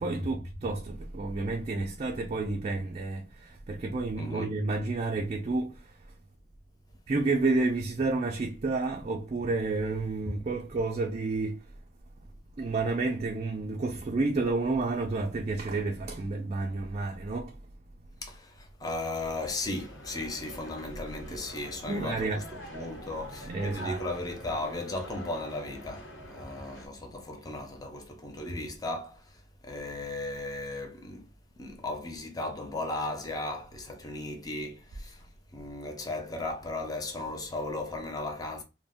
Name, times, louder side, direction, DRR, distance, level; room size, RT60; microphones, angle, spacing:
voice 1, 0.0-6.1 7.1-11.7 12.6-17.6 21.9-22.5 23.4-24.1, right 3 dB, 35° right, 0.3 m, -30 dB
voice 2, 4.2-4.5 18.2-22.3 22.7-31.3 31.6-35.3 35.5-38.6, left 2 dB, 20° left, 0.5 m, -36 dB
sound 1, 19.1-26.9, equal, 80° left, 0.9 m, -46 dB
2.5 x 2.1 x 3.4 m
head